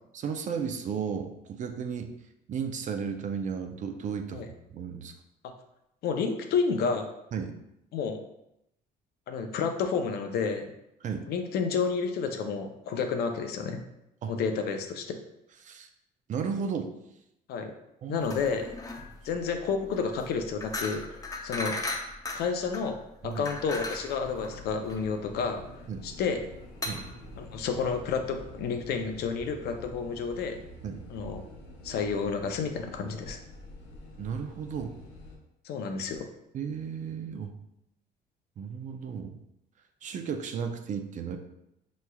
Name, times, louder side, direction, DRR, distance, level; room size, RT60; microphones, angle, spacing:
voice 1, 0.1-2.1 2.5-4.4 4.7-5.1 7.3-7.5 11.0-11.3 14.2-14.3 15.6-15.9 16.3-16.9 18.0-18.3 23.2-23.5 25.9-26.0 26.9-27.0 30.8-31.0 34.2-34.9 36.5-37.5 38.6-39.4 40.0-41.4, right 6 dB, 45° right, 6 dB, 0.5 m, -34 dB
voice 2, 6.0-7.1 7.9-8.2 9.3-10.7 11.3-13.8 14.3-15.2 17.5-17.7 18.1-18.7 19.2-21.8 22.3-23.0 23.2-25.6 26.0-26.4 27.4-30.6 31.1-31.4 31.8-33.4 35.6-36.3, left 5 dB, 70° left, 5 dB, 0.6 m, -30 dB
sound 1, 18.2-28.2, left 2 dB, 20° left, 0.5 m, -38 dB
sound 2, 24.2-35.4, left 1 dB, 90° left, 1.0 m, -47 dB
5.6 x 3.1 x 2.3 m, 0.83 s
cardioid pair, 110°, 17 cm